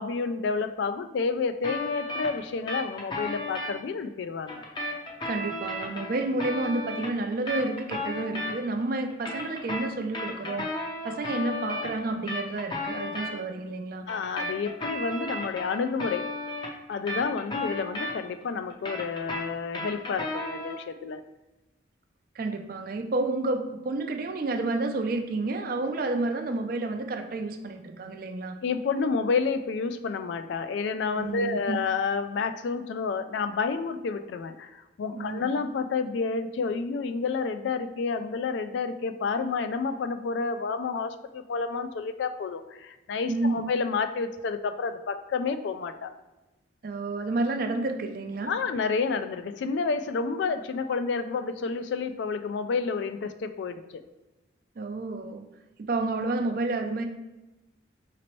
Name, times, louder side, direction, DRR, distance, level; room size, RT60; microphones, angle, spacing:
voice 1, 0.0-4.6 14.1-16.2 16.9-21.2 28.6-46.1 48.5-54.0, left 4 dB, 65° left, 9 dB, 0.3 m, -30 dB
sound 1, 1.6-3.7 4.5-8.8 9.1-13.3 14.1-18.4 18.7-20.8, left 2 dB, 25° left, 0.6 m, -34 dB
voice 2, 5.2-10.7 11.0-14.0 22.3-28.5 31.1-31.8 35.1-35.5 43.3-43.6 46.8-48.5 54.8-55.4 55.9-57.0, right 2 dB, 50° right, 6 dB, 0.4 m, -30 dB
5.0 x 2.9 x 3.0 m, 1.1 s
head